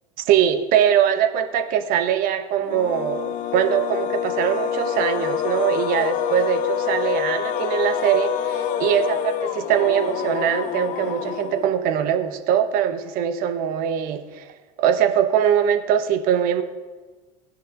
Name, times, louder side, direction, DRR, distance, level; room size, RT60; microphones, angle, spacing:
voice 1, 0.3-14.5 14.8-16.6, right 9 dB, 50° right, 8 dB, 1.1 m, -22 dB
sound 1, 2.6-12.0, left 9 dB, 45° left, 0.6 m, -26 dB
17.5 x 10.0 x 2.6 m, 1.3 s
figure-of-eight pair, 75°, 19 cm